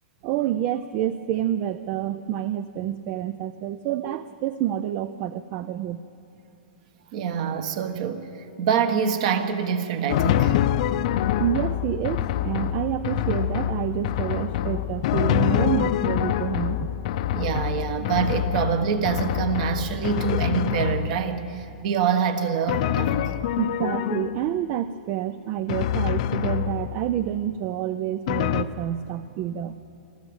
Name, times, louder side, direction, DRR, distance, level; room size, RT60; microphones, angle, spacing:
voice 1, 0.2-6.0 11.4-16.9 23.6-29.7, right 11 dB, 25° right, 13 dB, 0.4 m, -28 dB
voice 2, 7.1-8.3 8.6-10.5 17.3-23.4, right 7 dB, 40° right, 9 dB, 1.4 m, -25 dB
Drum, 10.1-21.5 22.7-24.6 25.7-27.2 28.3-28.6, left 11 dB, 40° left, 0.6 m, -25 dB
26.5 x 13.0 x 7.9 m, 2.8 s
supercardioid pair, 170°, 5 cm